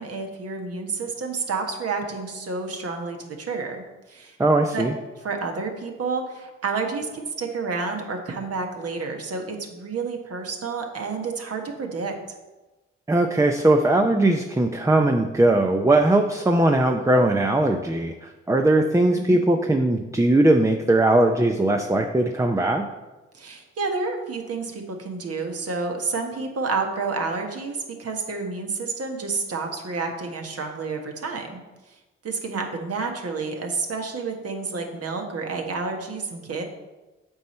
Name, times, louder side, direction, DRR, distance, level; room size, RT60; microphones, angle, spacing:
voice 1, 0.0-4.4 4.7-4.8 5.2-12.1 19.3-19.4 23.3-31.6 32.2-36.6, right 4 dB, 50° right, 3 dB, 1.3 m, -30 dB
voice 2, 4.4-4.9 13.1-22.9, right 2 dB, 10° right, 4 dB, 0.6 m, -20 dB
7.8 x 4.3 x 4.3 m, 1.1 s
hypercardioid pair, 45°, 30 cm